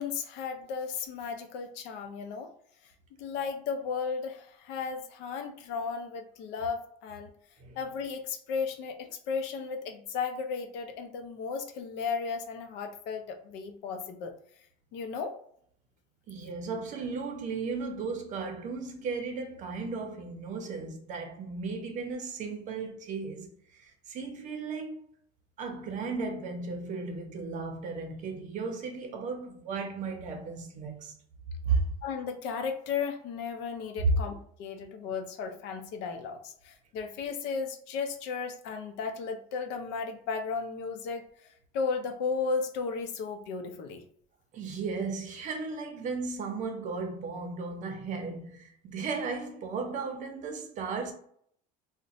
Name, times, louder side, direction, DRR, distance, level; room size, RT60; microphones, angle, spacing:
voice 1, 0.0-2.5 3.2-7.3 7.8-14.3 14.9-15.4 32.0-41.3 41.7-44.0, left 5 dB, 75° left, 0.6 m, -35 dB
voice 2, 16.3-23.5 23.8-25.0 25.6-31.1 31.7-31.9 44.5-51.1, right 4 dB, 45° right, 0.6 m, -35 dB
2.5 x 2.1 x 4.0 m
cardioid pair, 150°, 18 cm